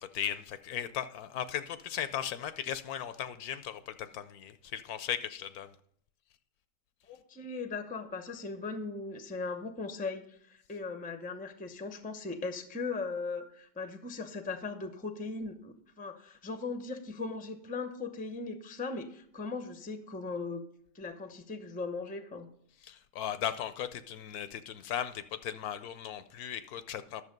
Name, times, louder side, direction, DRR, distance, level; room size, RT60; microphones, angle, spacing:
voice 1, 0.1-5.7 22.8-27.2, left 10 dB, 75° left, 13 dB, 1.1 m, -37 dB
voice 2, 7.1-20.6 20.9-22.5, left 4 dB, 10° left, 9 dB, 0.5 m, -38 dB
11.5 x 6.9 x 5.2 m, 0.68 s
omnidirectional pair, 1.7 m